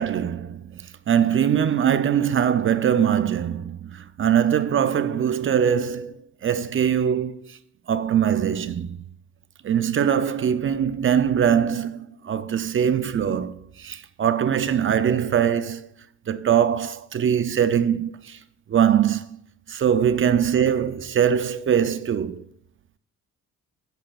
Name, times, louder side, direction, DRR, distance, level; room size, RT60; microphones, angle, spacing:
voice 1, 0.0-7.6 7.9-9.1 9.6-15.9 16.3-18.4 18.7-19.4 19.7-22.4, right 8 dB, 40° right, 0.6 m, -22 dB
11.5 x 8.9 x 2.4 m
cardioid pair, 90°, 30 cm